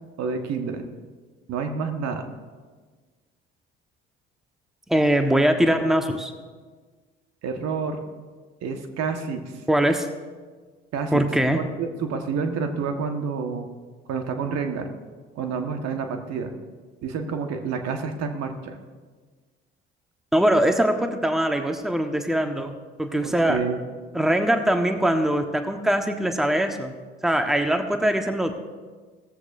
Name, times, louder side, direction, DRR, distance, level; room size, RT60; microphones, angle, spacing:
voice 1, 0.2-0.8 1.5-2.2 7.4-8.0 8.6-9.5 10.9-11.2 11.5-13.7 14.1-14.9 15.4-16.5 17.0-18.8 23.2-23.8, right 5 dB, 55° right, 6 dB, 1.4 m, -29 dB
voice 2, 4.9-6.3 9.7-10.1 11.1-11.6 20.3-22.7 23.0-23.6 24.1-26.9 27.2-28.5, right 1 dB, ahead, 6 dB, 1.2 m, -22 dB
17.0 x 14.5 x 2.6 m, 1.4 s
figure-of-eight pair, 55°, 31 cm